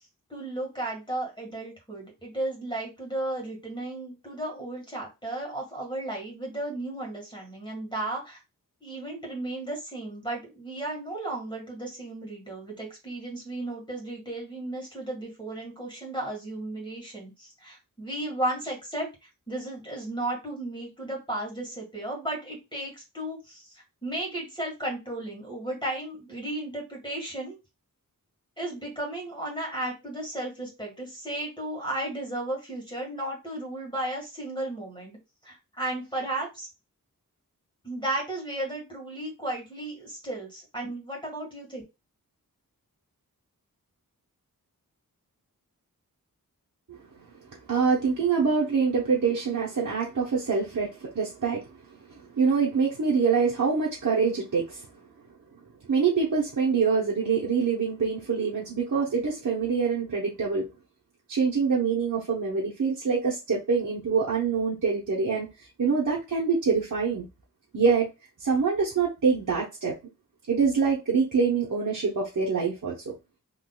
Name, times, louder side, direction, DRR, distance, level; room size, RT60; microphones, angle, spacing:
voice 1, 0.3-8.4 8.8-27.6 28.6-35.2 35.4-36.7 37.8-41.8, right 1 dB, 15° left, 1.7 m, -34 dB
voice 2, 47.7-51.7 52.1-54.8 55.9-60.7 61.3-65.5 65.8-67.3 67.7-68.1 68.4-69.9 70.5-73.1, right 5 dB, 60° right, 0.9 m, -25 dB
3.8 x 3.0 x 2.3 m
wide cardioid pair, 50°, 35 cm